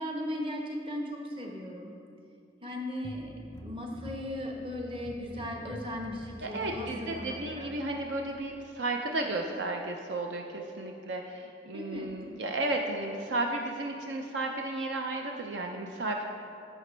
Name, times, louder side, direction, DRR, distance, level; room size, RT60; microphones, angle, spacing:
voice 1, 0.0-1.9 2.6-3.3 3.6-7.7 11.7-12.1, left 1 dB, 30° right, 0 dB, 1.0 m, -37 dB
sound 1, 3.0-8.4, equal, 15° left, 0.5 m, -47 dB
voice 2, 6.4-16.2, right 2 dB, 65° right, 2 dB, 0.5 m, -33 dB
11.0 x 7.5 x 3.3 m, 2.5 s
head